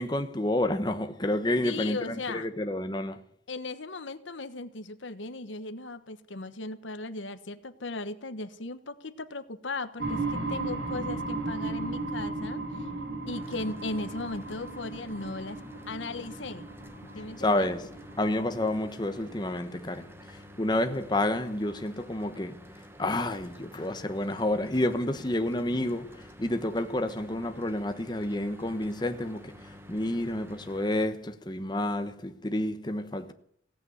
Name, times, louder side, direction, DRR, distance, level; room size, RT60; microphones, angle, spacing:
voice 1, 0.0-3.2 17.4-17.9 18.2-22.7 23.0-33.3, left 1 dB, 25° left, 1.1 m, -30 dB
voice 2, 1.6-2.5 3.5-12.9 13.3-15.6 15.9-16.7 17.1-17.7, left 2 dB, 80° left, 1.2 m, -37 dB
sound 1, 10.0-19.6, right 3 dB, 75° right, 5.9 m, -36 dB
Mechanical fan, 13.3-31.1, equal, 15° right, 1.3 m, -49 dB
17.0 x 9.0 x 9.4 m
head